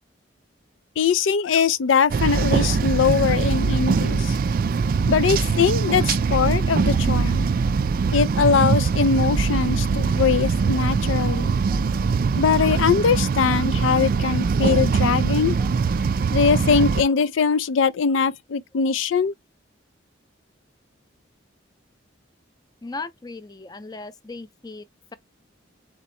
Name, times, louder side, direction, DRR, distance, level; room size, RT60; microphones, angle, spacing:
voice 1, 1.0-4.4 5.1-7.5 8.1-11.6 12.4-15.6 16.3-19.3, left 6 dB, 85° left, 0.4 m, -21 dB
sound 1, 2.1-17.0, right 5 dB, 45° right, 0.3 m, -22 dB
voice 2, 22.8-25.1, left 3 dB, 20° left, 0.5 m, -38 dB
4.2 x 2.8 x 4.2 m
head